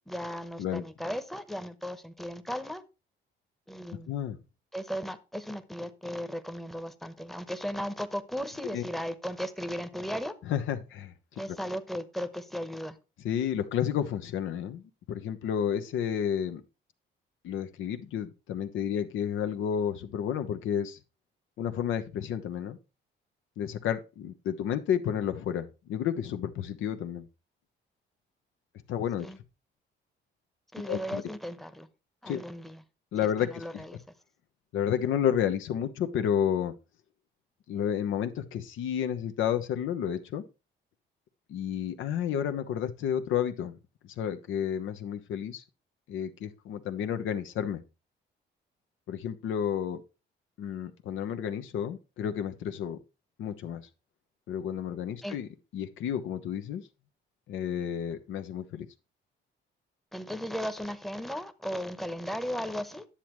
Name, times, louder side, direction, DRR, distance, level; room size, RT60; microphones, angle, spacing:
voice 1, 0.1-2.8 3.7-4.1 4.7-10.4 11.4-13.0 29.2-29.4 30.7-31.9 32.2-32.8 33.4-34.0 55.2-55.4 60.1-63.1, equal, ahead, 0.9 m, -36 dB
voice 2, 10.4-11.1 13.2-16.6 17.4-21.0 21.6-22.8 23.6-27.3 28.9-29.3 30.9-31.2 32.3-32.4 33.1-33.6 34.7-36.7 37.7-40.4 41.5-43.8 44.0-45.6 46.1-47.8 49.1-50.0 50.6-53.0 53.4-53.8 54.5-56.8 57.5-58.9, left 9 dB, 80° left, 1.0 m, -31 dB
10.0 x 7.4 x 3.1 m
cardioid pair, 90°, 20 cm